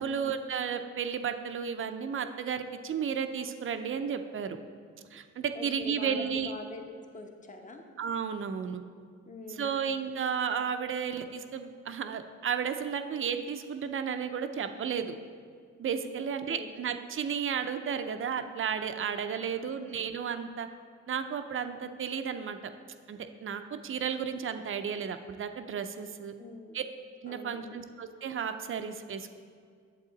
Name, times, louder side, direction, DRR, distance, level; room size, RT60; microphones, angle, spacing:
voice 1, 0.0-4.6 5.1-6.5 8.0-8.8 9.5-15.2 15.8-20.7 21.1-22.6 23.1-26.3 26.7-26.8 27.2-29.4, right 7 dB, 45° right, 8 dB, 0.6 m, -33 dB
voice 2, 5.5-7.8 9.3-9.8 16.5-16.7 19.4-19.6 26.4-26.8 27.3-27.8, left 3 dB, 25° left, 4 dB, 1.0 m, -44 dB
8.3 x 7.3 x 4.0 m, 2.1 s
cardioid pair, 90°, 30 cm